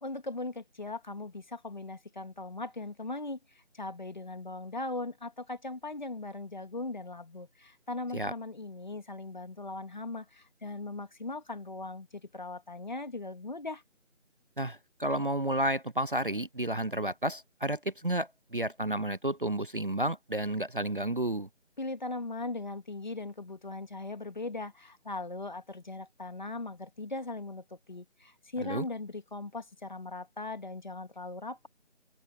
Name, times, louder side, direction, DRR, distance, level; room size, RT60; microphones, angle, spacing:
voice 1, 0.0-3.4 3.7-13.8 21.8-31.7, left 2 dB, 40° left, 2.1 m, -39 dB
voice 2, 14.6-21.5 28.6-28.9, right 1 dB, 50° right, 0.4 m, -31 dB
open air
figure-of-eight pair, 175°, 36 cm